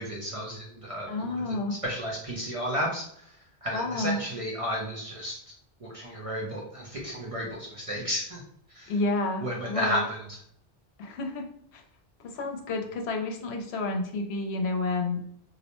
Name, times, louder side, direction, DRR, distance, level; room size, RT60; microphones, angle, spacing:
voice 1, 0.0-1.1 1.8-3.1 3.6-5.4 5.8-8.4 8.8-8.9 9.4-10.0, equal, 50° right, -3 dB, 0.4 m, -32 dB
voice 2, 1.1-1.8 3.7-4.2 8.9-10.1 11.0-11.5 11.7-11.8 12.2-15.3, left 3 dB, 75° left, 3 dB, 0.8 m, -30 dB
2.6 x 2.0 x 2.9 m, 0.68 s
omnidirectional pair, 1.1 m